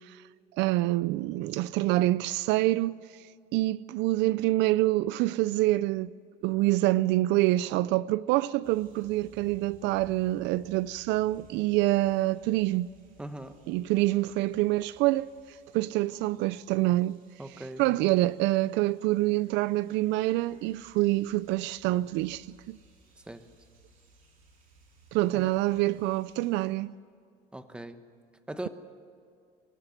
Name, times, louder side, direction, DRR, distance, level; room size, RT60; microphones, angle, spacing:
voice 1, 0.5-3.0 3.5-6.1 6.4-12.9 13.7-17.2 17.8-22.8 25.1-26.9, right 17 dB, 70° right, 0.4 m, -26 dB
sound 1, 8.6-26.7, right 2 dB, 45° right, 7.4 m, -60 dB
voice 2, 13.2-13.6 17.4-17.8 23.3-23.5 25.3-25.5 27.5-28.0 28.5-28.7, right 1 dB, 5° right, 1.1 m, -39 dB
24.5 x 15.5 x 7.9 m
cardioid pair, 150°, 19 cm